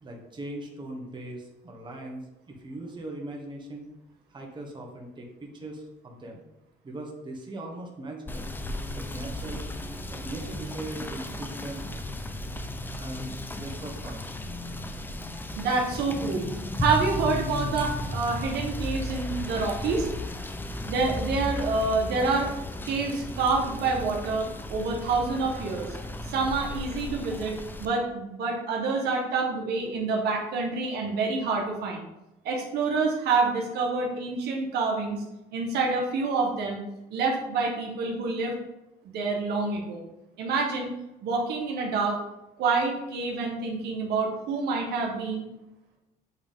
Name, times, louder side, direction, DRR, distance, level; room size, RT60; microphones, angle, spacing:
voice 1, 0.0-3.9 4.3-6.4 6.8-8.5 8.9-9.6 10.1-11.9 13.0-14.3, right 1 dB, 25° right, 0 dB, 1.4 m, -40 dB
Rain / Motor vehicle (road), 8.3-27.9, left 1 dB, 10° left, 0.5 m, -35 dB
voice 2, 15.6-16.5 16.8-20.1 20.9-22.5 22.8-26.0 26.3-32.1 32.4-35.2 35.5-36.8 37.1-38.5 39.1-40.0 40.4-40.9 41.2-42.2 42.6-45.4, right 4 dB, 75° right, 0 dB, 1.3 m, -27 dB
7.9 x 3.4 x 3.7 m, 0.93 s
cardioid pair, 110°, 17 cm